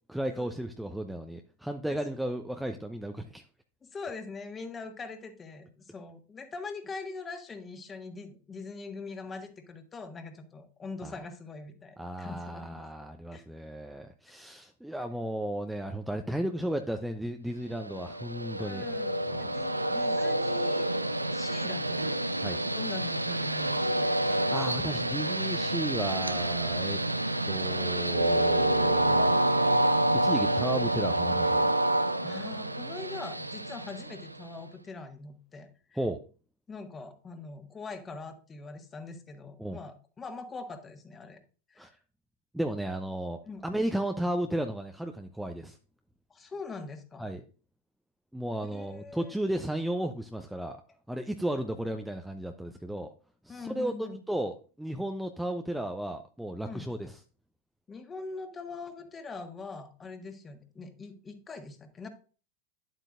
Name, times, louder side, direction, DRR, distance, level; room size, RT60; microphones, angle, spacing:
voice 1, 0.1-3.4 11.0-11.2 12.0-18.9 19.3-19.7 22.4-22.6 24.3-27.0 27.5-29.4 30.1-31.7 36.0-36.2 39.6-39.8 41.8-41.9 42.5-45.8 47.2-47.4 48.3-50.8 51.1-53.1 53.4-53.9 54.3-57.2, right 1 dB, 5° right, 0.7 m, -34 dB
voice 2, 3.8-12.8 13.3-13.5 14.3-14.5 18.6-21.0 21.3-22.2 22.6-24.5 32.2-36.0 36.7-41.4 41.7-41.9 43.4-43.6 46.3-47.3 48.6-49.4 53.5-54.2 56.6-56.9 57.9-62.1, left 3 dB, 20° left, 1.5 m, -43 dB
Train, 17.8-34.6, right 1 dB, 85° right, 0.6 m, -28 dB
11.0 x 7.8 x 2.5 m
figure-of-eight pair, 90°, 0 cm